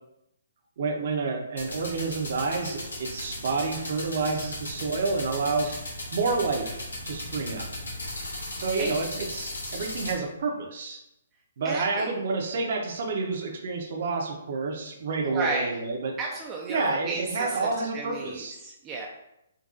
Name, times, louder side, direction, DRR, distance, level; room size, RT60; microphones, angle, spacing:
voice 1, 0.8-5.8 6.1-7.7 8.6-11.0 11.6-16.2 16.7-18.5, right 4 dB, 55° right, 2 dB, 0.7 m, -29 dB
sound 1, 1.6-10.1, left 1 dB, 80° left, 1.0 m, -37 dB
voice 2, 8.4-9.0 11.6-12.1 15.2-15.7 16.2-17.6 17.9-19.1, right 3 dB, 20° right, -1 dB, 0.4 m, -33 dB
4.0 x 2.6 x 2.5 m, 0.84 s
figure-of-eight pair, 130°, 0 cm